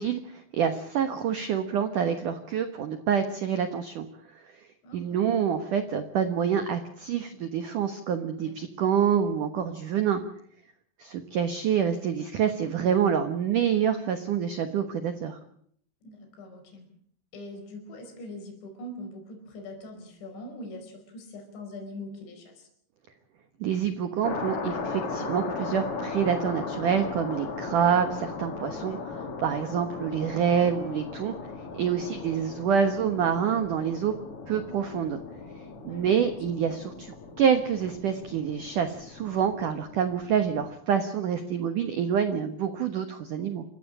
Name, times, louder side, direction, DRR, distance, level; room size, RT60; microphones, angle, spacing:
voice 1, 0.0-4.1 4.9-10.2 11.0-15.4 23.6-31.3 31.7-34.1 34.5-35.2 35.8-43.7, right 8 dB, 90° right, 8 dB, 1.8 m, -27 dB
voice 2, 4.8-5.4 8.5-8.6 16.0-16.9 17.3-22.7 32.0-32.3 35.9-36.3, left 1 dB, 60° left, 4 dB, 7.1 m, -43 dB
sound 1, 24.2-40.7, left 4 dB, 45° left, 1.9 m, -37 dB
27.5 x 15.0 x 8.6 m, 0.66 s
omnidirectional pair, 5.9 m